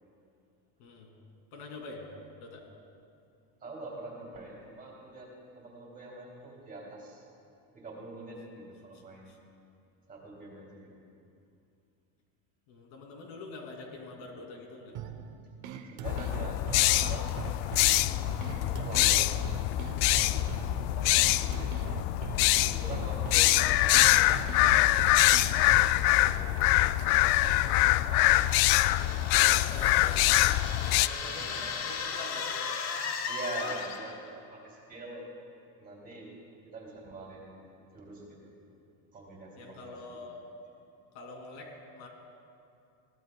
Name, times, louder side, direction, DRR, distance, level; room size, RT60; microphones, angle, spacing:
voice 1, 0.8-1.1 1.5-2.1 2.4-2.6 8.9-9.4 12.7-15.0 29.3-30.3 31.0-32.5 39.6-40.4 41.1-42.1, left 3 dB, 65° left, 0 dB, 2.8 m, -45 dB
voice 2, 3.6-5.3 5.6-7.2 7.7-9.3 10.1-11.0 15.9-17.9 18.6-22.0 22.7-25.2 25.6-26.6 27.0-28.4 28.7-28.8 31.2-31.7 32.9-35.3 35.8-36.3 36.6-37.6 37.9-38.4 39.1-40.0, right 2 dB, 20° right, -2 dB, 2.8 m, -45 dB
sound 1, 14.9-26.0, right 7 dB, 40° right, 0.8 m, -42 dB
sound 2, 16.0-31.1, left 16 dB, 85° left, 0.5 m, -24 dB
sound 3, 28.3-34.3, left 6 dB, 35° left, 0.8 m, -37 dB
22.5 x 17.0 x 2.3 m, 2.6 s
cardioid pair, 165°, 45 cm